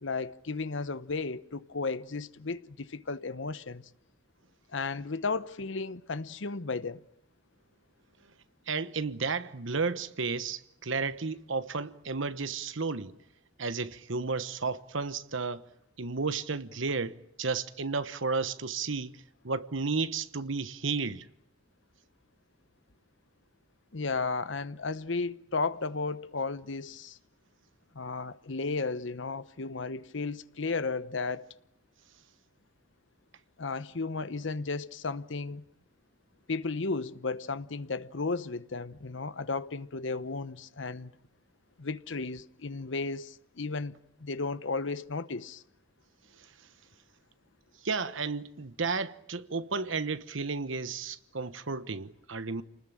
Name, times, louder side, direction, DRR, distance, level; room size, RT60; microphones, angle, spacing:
voice 1, 0.0-3.8 4.7-7.0 23.9-27.2 27.9-31.5 33.6-35.6 36.5-41.1 41.8-43.9 44.2-45.6, left 4 dB, 65° left, 0.9 m, -34 dB
voice 2, 8.7-13.1 13.6-15.6 16.0-19.1 19.4-21.3 47.8-52.6, right 4 dB, 70° right, 1.1 m, -32 dB
28.5 x 20.0 x 8.8 m
head